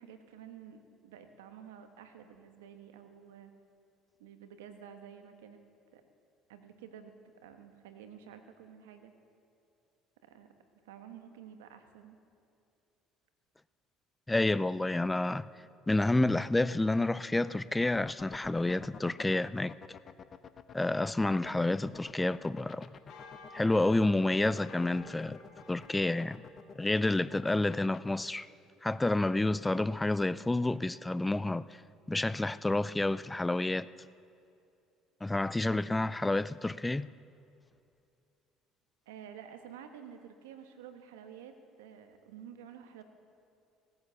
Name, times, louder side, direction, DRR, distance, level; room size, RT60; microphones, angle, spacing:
voice 1, 0.0-3.5 4.2-5.6 5.9-6.0 6.5-9.1 10.2-10.5 10.8-12.2 39.1-43.0, right 8 dB, 90° right, 1.2 m, -51 dB
voice 2, 14.3-15.4 15.9-19.7 20.7-22.9 23.5-25.4 25.7-26.4 26.8-28.5 28.8-31.6 32.1-33.9 35.2-37.1, left 2 dB, 15° left, 0.4 m, -29 dB
sound 1, 17.7-28.1, left 7 dB, 45° left, 0.7 m, -49 dB
sound 2, 22.1-27.9, left 3 dB, 65° left, 3.7 m, -54 dB
18.0 x 9.6 x 6.9 m
supercardioid pair, 75°, 0 cm